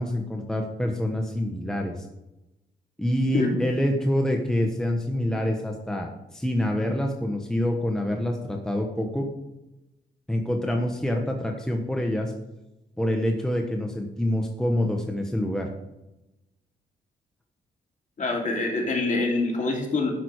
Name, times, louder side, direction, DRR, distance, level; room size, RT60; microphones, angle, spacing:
voice 1, 0.0-2.0 3.0-9.3 10.3-12.3 13.0-15.7, left 1 dB, 5° left, 2 dB, 1.2 m, -26 dB
voice 2, 18.2-20.1, left 3 dB, 40° left, 0 dB, 2.8 m, -25 dB
12.0 x 6.0 x 4.8 m, 0.95 s
cardioid pair, 100°, 19 cm